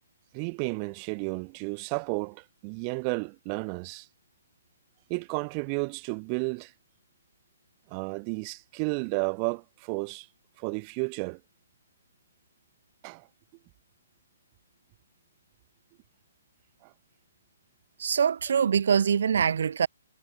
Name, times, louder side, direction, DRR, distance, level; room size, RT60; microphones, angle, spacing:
voice 1, 0.3-4.1 5.1-6.7 7.9-10.3 10.6-11.4 13.0-13.3 16.8-16.9, right 40 dB or more, 30° right, 4.1 m, -32 dB
voice 2, 18.0-19.9, right 7 dB, 65° right, 4.3 m, -24 dB
hypercardioid pair, 145°, 0 cm